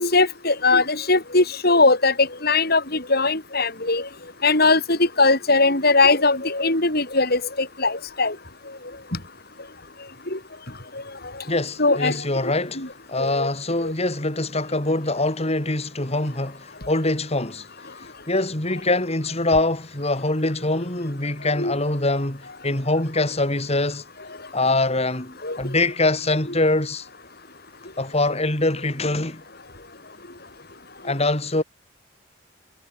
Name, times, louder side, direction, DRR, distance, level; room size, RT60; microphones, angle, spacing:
voice 1, 0.0-4.1 4.4-8.4 9.1-9.2 10.3-10.4 10.9-11.0 11.8-12.2 12.4-12.9 13.2-13.5 13.8-13.9 21.6-21.7 25.4-25.6, left 3 dB, 55° left, 7.7 m, -20 dB
voice 2, 11.5-17.7 18.3-24.0 24.5-27.1 28.0-29.4 31.0-31.6, left 2 dB, 35° left, 3.8 m, -24 dB
head